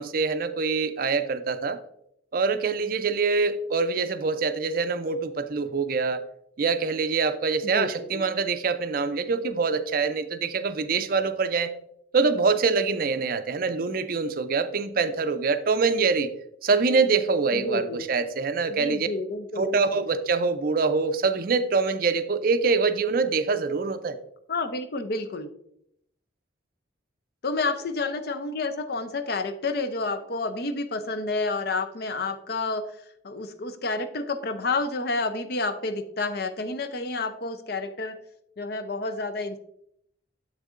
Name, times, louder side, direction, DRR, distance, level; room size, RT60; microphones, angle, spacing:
voice 1, 0.0-1.8 2.3-6.2 6.6-11.7 12.1-16.3 16.6-19.1 19.6-24.2, right 4 dB, 45° right, 10 dB, 0.4 m, -25 dB
voice 2, 7.7-8.2 17.5-18.0 18.7-20.1 24.5-25.5 27.4-32.9 33.2-38.2 38.6-39.6, left 3 dB, 50° left, 9 dB, 0.5 m, -30 dB
7.3 x 6.4 x 2.5 m, 0.74 s
head